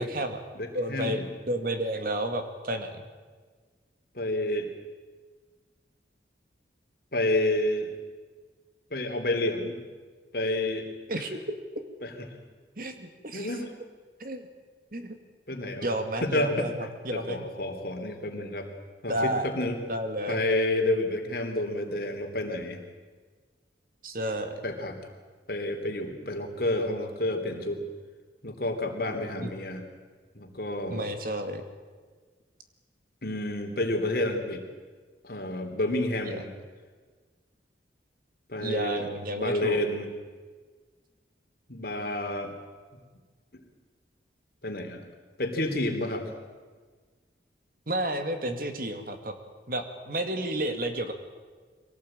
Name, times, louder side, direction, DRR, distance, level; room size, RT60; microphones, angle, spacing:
voice 1, 0.0-0.4 0.7-3.1 11.1-11.6 12.8-13.5 14.2-14.5 14.9-15.2 15.8-17.5 19.1-19.5 19.9-20.4 24.0-24.6 29.4-29.5 30.9-31.6 36.3-36.4 38.6-39.8 47.9-49.3 49.7-51.1, right 1 dB, 50° right, 7 dB, 2.1 m, -31 dB
voice 2, 0.6-1.2 4.1-4.7 7.1-7.9 8.9-9.8 10.3-10.9 12.0-12.1 13.3-13.7 15.5-15.9 16.2-16.7 17.1-18.7 19.0-19.8 20.3-22.8 24.6-25.0 25.5-27.8 28.4-29.8 30.3-31.1 33.2-34.6 35.2-36.5 38.5-39.1 39.3-40.1 41.7-42.5 44.6-45.0 45.4-46.3, left 1 dB, 55° left, 4 dB, 3.2 m, -29 dB
24.0 x 18.0 x 8.9 m, 1.5 s
head